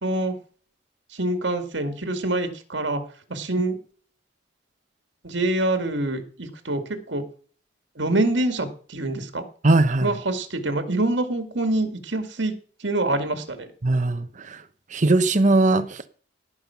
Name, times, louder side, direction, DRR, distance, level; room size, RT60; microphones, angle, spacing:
voice 1, 0.0-0.4 1.1-3.0 3.3-3.8 5.2-7.2 8.0-9.4 10.0-12.6 12.8-13.7, right 2 dB, 70° right, 7 dB, 2.1 m, -25 dB
voice 2, 9.6-10.1 13.8-14.6 14.9-16.1, right 2 dB, 40° right, 10 dB, 1.0 m, -20 dB
17.0 x 5.6 x 5.9 m, 0.43 s
head